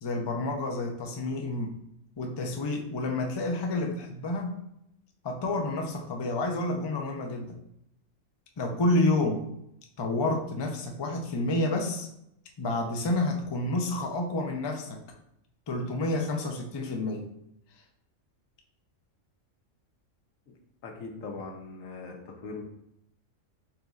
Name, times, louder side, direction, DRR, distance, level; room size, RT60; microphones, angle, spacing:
voice 1, 0.0-1.7 2.2-4.6 5.2-7.6 8.6-9.5 10.0-12.1 12.6-15.0 15.7-17.3, left 2 dB, 45° left, 2 dB, 0.3 m, -29 dB
voice 2, 20.8-22.6, left 3 dB, 90° left, 2 dB, 1.2 m, -40 dB
4.4 x 3.9 x 2.4 m, 0.78 s
omnidirectional pair, 1.3 m